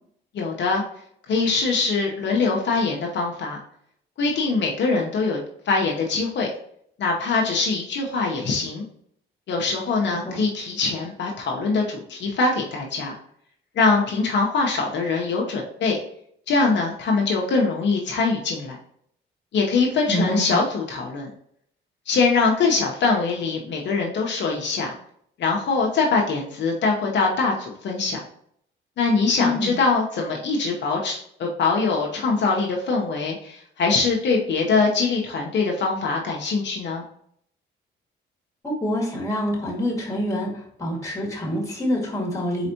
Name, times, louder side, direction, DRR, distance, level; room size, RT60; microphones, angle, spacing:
voice 1, 0.3-0.8 1.3-3.6 4.2-5.4 5.7-6.5 7.0-8.8 9.5-13.1 13.8-16.0 16.5-18.8 19.5-21.3 22.1-24.9 25.4-28.2 29.0-37.0, left 4 dB, 65° left, -1 dB, 0.8 m, -23 dB
voice 2, 20.1-20.6 29.4-29.8 38.6-40.5 40.8-42.7, equal, 15° left, -2 dB, 1.8 m, -26 dB
4.3 x 4.0 x 2.8 m, 0.67 s
cardioid pair, 90°, 20 cm